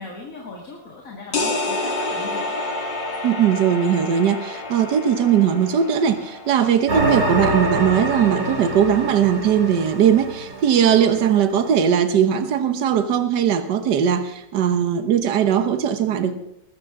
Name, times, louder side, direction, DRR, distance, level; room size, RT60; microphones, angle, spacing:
voice 1, 0.0-2.4, left 3 dB, 50° left, -2 dB, 2.4 m, -37 dB
sound 1, 1.3-6.9, left 2 dB, 80° left, 2.7 m, -29 dB
voice 2, 3.2-16.3, right 8 dB, 70° right, 9 dB, 1.6 m, -19 dB
sound 2, 6.9-11.3, right 1 dB, 55° right, 3.0 m, -25 dB
20.5 x 14.0 x 3.7 m, 0.82 s
omnidirectional pair, 1.9 m